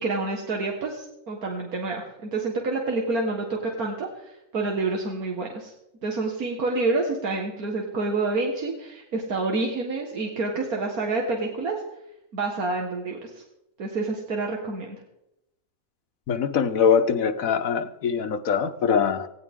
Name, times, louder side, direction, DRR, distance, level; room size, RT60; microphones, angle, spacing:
voice 1, 0.0-5.7 6.0-11.8 12.3-13.4 13.8-14.9, right 3 dB, 90° right, 0 dB, 2.2 m, -28 dB
voice 2, 16.3-19.3, left 6 dB, 70° left, 10 dB, 1.4 m, -23 dB
18.5 x 16.5 x 3.7 m, 0.85 s
omnidirectional pair, 1.5 m